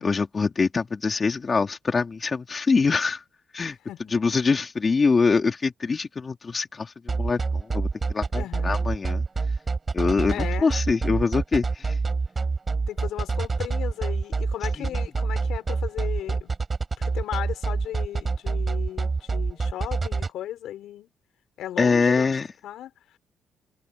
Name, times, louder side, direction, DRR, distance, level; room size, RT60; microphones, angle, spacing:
voice 1, 0.0-3.2 3.5-3.8 4.1-9.3 9.9-12.0 14.8-14.9 21.8-22.5, left 4 dB, 35° left, 3.7 m, -24 dB
sound 1, 7.1-20.3, right 4 dB, 30° right, 4.8 m, -26 dB
voice 2, 8.3-8.8 10.3-10.7 12.9-16.5 17.0-21.1 21.6-22.4 22.6-23.2, left 12 dB, 80° left, 6.6 m, -36 dB
cardioid pair, 90°, 0 cm